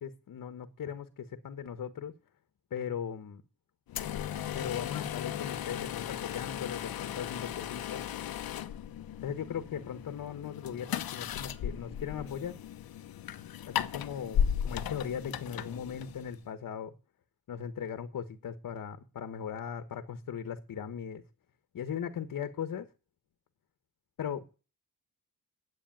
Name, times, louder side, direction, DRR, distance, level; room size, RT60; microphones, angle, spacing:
voice 1, 0.0-2.1 2.7-3.4 4.5-8.0 9.2-12.6 13.7-16.9 17.5-21.2 21.7-22.9 24.2-24.4, left 8 dB, 65° left, 9 dB, 1.3 m, -38 dB
sound 1, 3.9-16.4, left 9 dB, 85° left, 0.9 m, -36 dB
10.5 x 8.4 x 9.0 m, 0.34 s
wide cardioid pair, 130°, 35 cm